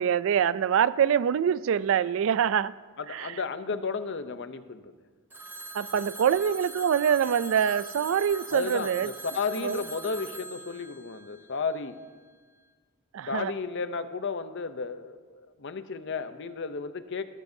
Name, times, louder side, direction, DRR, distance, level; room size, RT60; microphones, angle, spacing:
voice 1, 0.0-2.8 3.1-3.4 5.7-9.1 9.6-9.8 13.1-13.5, right 8 dB, 60° right, 0.3 m, -25 dB
voice 2, 3.0-4.9 8.5-12.0 13.3-17.2, left 4 dB, 55° left, 0.6 m, -33 dB
Telephone, 5.3-12.1, right 3 dB, 10° right, 0.5 m, -42 dB
19.0 x 13.0 x 2.7 m
head